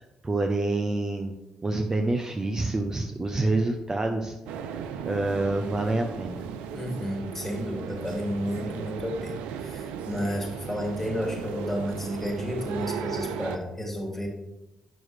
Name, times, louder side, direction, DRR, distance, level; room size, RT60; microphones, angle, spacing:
voice 1, 0.2-1.4 1.6-4.8 5.1-6.4, right 2 dB, 30° right, 5 dB, 0.7 m, -27 dB
sound 1, 4.5-13.6, right 7 dB, 85° right, 0.4 m, -36 dB
voice 2, 6.7-14.3, equal, 10° left, 0 dB, 2.5 m, -31 dB
9.0 x 6.1 x 3.2 m, 0.95 s
hypercardioid pair, 50°, 2 cm